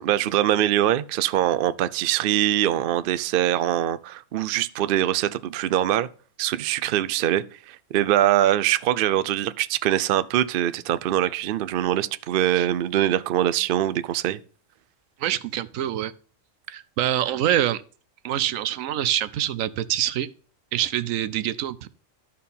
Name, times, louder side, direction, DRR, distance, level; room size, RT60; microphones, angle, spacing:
voice 1, 0.0-6.1 6.4-14.4, right 12 dB, 60° right, 0.6 m, -23 dB
voice 2, 15.2-16.1 16.7-17.8 18.2-20.3 20.7-21.9, right 11 dB, 80° right, 1.0 m, -25 dB
13.0 x 4.5 x 5.4 m
omnidirectional pair, 1.4 m